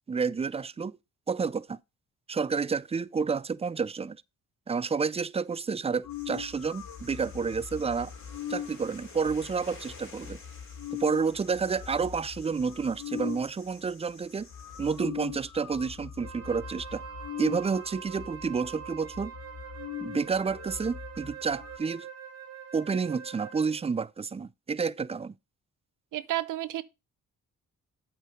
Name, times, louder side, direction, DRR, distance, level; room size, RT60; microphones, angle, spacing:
voice 1, 0.1-1.0 1.3-1.8 2.3-4.2 4.7-8.1 8.5-10.4 10.9-14.5 14.8-17.0 17.4-19.3 20.0-22.1 22.7-25.3, right 5 dB, 20° right, 0.4 m, -30 dB
sound 1, 6.0-13.5 14.1-14.2 14.4-21.8, left 9 dB, 75° left, 1.3 m, -41 dB
sound 2, 6.1-15.0, left 3 dB, 40° left, 3.2 m, -52 dB
Wind instrument woodwind instrument, 16.2-23.8, right 8 dB, 50° right, 1.9 m, -44 dB
voice 2, 26.1-26.8, right 14 dB, 75° right, 0.7 m, -31 dB
8.2 x 4.6 x 5.1 m
cardioid pair, 65°, 32 cm